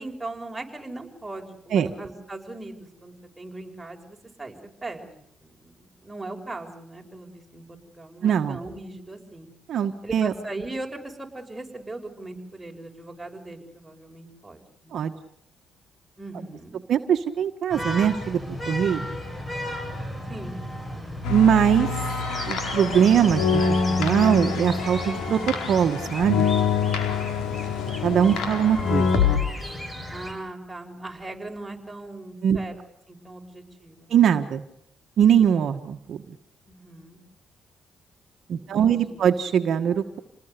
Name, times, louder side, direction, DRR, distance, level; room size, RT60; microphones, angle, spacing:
voice 1, 0.0-4.6 4.8-5.7 6.0-9.5 10.0-15.0 16.2-16.8 20.3-20.6 30.1-32.7 33.1-34.1 36.7-37.2 38.6-39.2, right 2 dB, 15° right, 2 dB, 5.9 m, -39 dB
voice 2, 8.2-8.6 9.7-10.3 14.9-15.1 16.9-19.0 21.3-21.9 22.4-25.4 25.7-26.5 28.0-29.1 32.4-32.6 34.1-34.6 35.2-36.2 38.5-40.2, right 8 dB, 65° right, 6 dB, 1.4 m, -21 dB
sound 1, 17.7-30.3, equal, 20° left, 7.4 m, -35 dB
sound 2, 21.2-29.4, left 5 dB, 85° left, 4.5 m, -25 dB
28.0 x 20.0 x 6.8 m, 0.73 s
cardioid pair, 90°, 0 cm